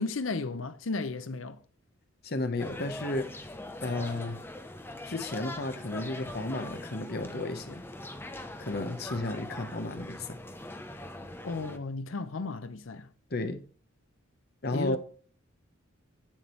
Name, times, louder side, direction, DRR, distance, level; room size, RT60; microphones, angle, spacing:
voice 1, 0.0-1.6 11.4-13.1 14.7-15.0, left 3 dB, 75° left, 0.7 m, -34 dB
voice 2, 2.2-3.3 3.8-4.4 5.0-7.8 8.6-10.3 13.3-13.6 14.6-15.0, left 2 dB, 50° left, 1.0 m, -33 dB
sound 1, 2.6-11.8, left 1 dB, 10° left, 0.7 m, -42 dB
8.7 x 7.3 x 3.1 m
head